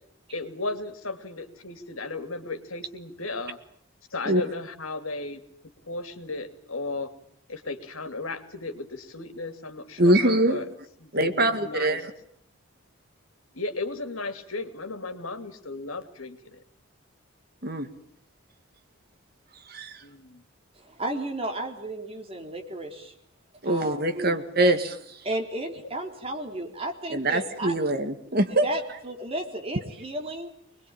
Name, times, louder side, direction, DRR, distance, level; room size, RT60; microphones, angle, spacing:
voice 1, 0.3-3.6 4.1-5.4 5.9-7.1 7.5-10.6 11.0-12.0 13.5-16.6 20.0-20.4, left 3 dB, 85° left, 8 dB, 2.7 m, -35 dB
voice 2, 10.0-10.7 11.1-12.1 17.6-17.9 19.7-20.0 23.6-24.9 27.1-28.7, right 1 dB, 45° right, 8 dB, 2.0 m, -23 dB
voice 3, 20.7-23.1 23.6-24.8 25.2-27.7 28.5-30.5, right 1 dB, 25° right, 2 dB, 3.8 m, -33 dB
25.0 x 21.5 x 8.9 m, 0.66 s
head